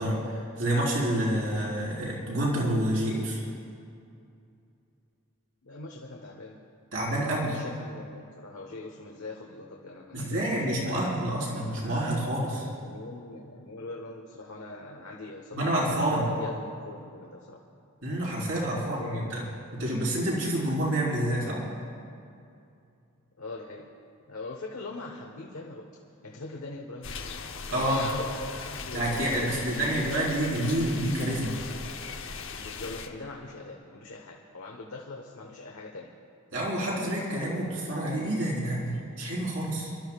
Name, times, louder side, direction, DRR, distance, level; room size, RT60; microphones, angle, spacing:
voice 1, 0.0-3.4 6.9-7.6 10.1-12.7 15.5-16.3 18.0-19.4 19.7-21.6 27.7-28.0 28.9-31.5 36.5-39.9, right 1 dB, 60° right, -5 dB, 4.2 m, -28 dB
voice 2, 5.6-6.6 7.1-10.4 10.9-11.2 12.4-15.8 16.1-17.6 18.7-19.4 23.4-23.9 24.3-25.9 26.2-30.0 32.6-36.1, left 2 dB, 90° left, -1 dB, 1.2 m, -42 dB
sound 1, 27.0-33.1, left 5 dB, 60° left, 0.8 m, -38 dB
28.5 x 13.0 x 2.4 m, 2.5 s
head